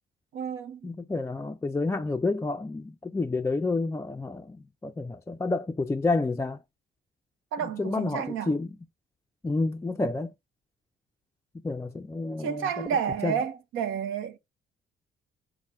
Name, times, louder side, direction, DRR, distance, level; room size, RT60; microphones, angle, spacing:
voice 1, 0.3-0.9 7.5-8.6 12.4-14.4, right 8 dB, 85° right, 0.7 m, -31 dB
voice 2, 0.8-6.6 7.8-8.7 9.4-10.3 11.6-12.7 13.2-13.3, left 3 dB, 15° left, 0.3 m, -29 dB
5.4 x 2.1 x 4.7 m
cardioid pair, 90°, 20 cm